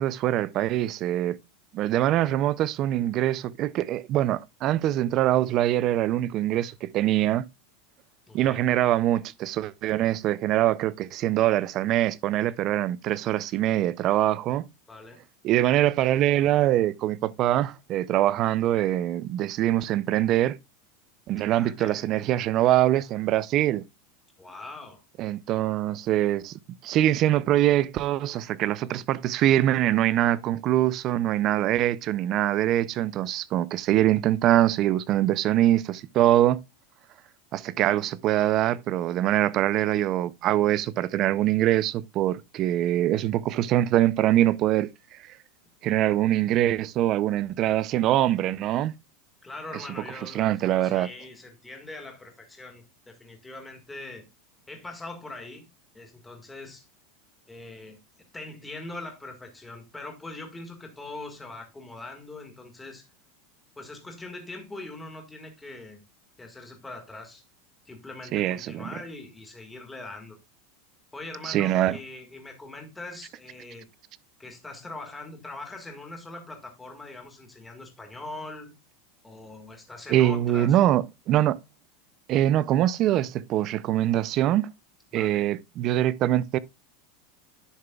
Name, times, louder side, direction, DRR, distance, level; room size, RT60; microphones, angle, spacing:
voice 1, 0.0-1.4 1.7-7.5 8.3-14.7 15.4-20.6 21.3-23.8 25.2-26.5 26.8-36.6 37.5-45.2 45.8-48.9 50.2-51.1 68.3-68.9 71.4-72.0 80.1-81.6 82.3-84.7 85.1-86.6, right 13 dB, 30° right, 0.4 m, -23 dB
voice 2, 8.3-8.6 14.9-15.2 21.5-22.1 24.4-25.0 49.4-50.5 50.8-54.2 54.7-55.7 55.9-56.8 57.5-58.0 58.3-63.0 63.8-66.0 66.4-67.4 67.8-70.4 71.1-73.9 74.4-78.7 79.2-80.8 85.1-85.5, left 2 dB, 5° left, 1.7 m, -42 dB
10.5 x 6.6 x 2.3 m
supercardioid pair, 175°, 0 cm